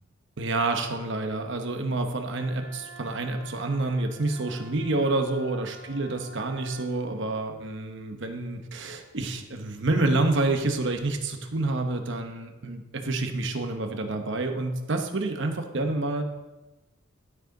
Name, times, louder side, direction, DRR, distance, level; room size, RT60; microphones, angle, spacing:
voice 1, 0.4-16.2, right 2 dB, 60° right, 5 dB, 0.9 m, -28 dB
Wind instrument woodwind instrument, 2.3-6.9, right 3 dB, 75° right, 1.7 m, -48 dB
12.0 x 5.2 x 3.9 m, 1.1 s
head